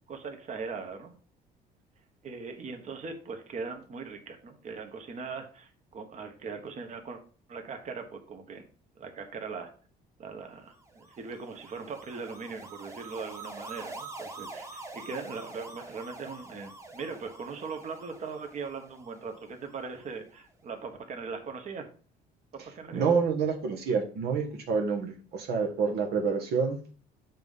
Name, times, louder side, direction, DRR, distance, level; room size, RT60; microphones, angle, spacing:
voice 1, 0.1-1.1 2.2-7.2 7.5-8.6 9.0-9.7 10.2-21.9 22.8-23.1, right 4 dB, 45° right, 5 dB, 1.3 m, -40 dB
sound 1, 10.8-20.1, right 2 dB, 15° right, 1.2 m, -46 dB
voice 2, 22.9-26.8, right 5 dB, 70° right, 2 dB, 1.3 m, -28 dB
7.5 x 3.7 x 5.5 m, 0.40 s
cardioid pair, 110°, 17 cm